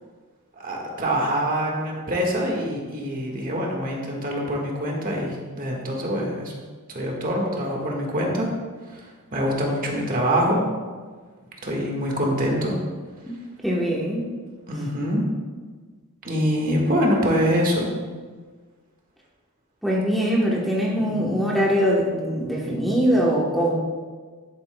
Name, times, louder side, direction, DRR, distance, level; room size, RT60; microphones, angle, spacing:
voice 1, 0.6-6.5 6.9-8.5 8.9-9.0 9.3-10.6 11.6-12.7 14.7-15.2 16.2-17.9 20.9-21.3, equal, 40° right, -1 dB, 1.5 m, -24 dB
voice 2, 13.6-14.3 19.8-23.8, equal, ahead, -4 dB, 1.0 m, -22 dB
11.5 x 8.4 x 2.2 m, 1.5 s
head